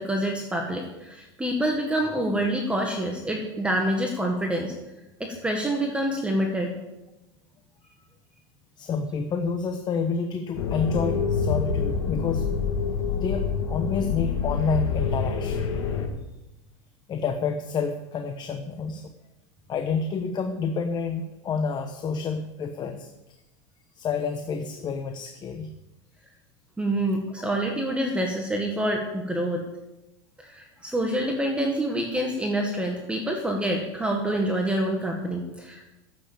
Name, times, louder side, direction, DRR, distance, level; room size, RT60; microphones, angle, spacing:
voice 1, 0.0-4.7 5.2-6.8 26.8-29.7 30.4-35.8, right 1 dB, 5° right, 1 dB, 1.7 m, -27 dB
voice 2, 8.8-12.5 13.1-15.7 17.1-19.1 19.7-23.1 23.9-25.7, left 5 dB, 30° left, 6 dB, 1.1 m, -29 dB
sound 1, 10.5-16.1, left 6 dB, 80° left, 2.5 m, -26 dB
12.5 x 8.2 x 7.3 m, 0.97 s
supercardioid pair, 125°, 15 cm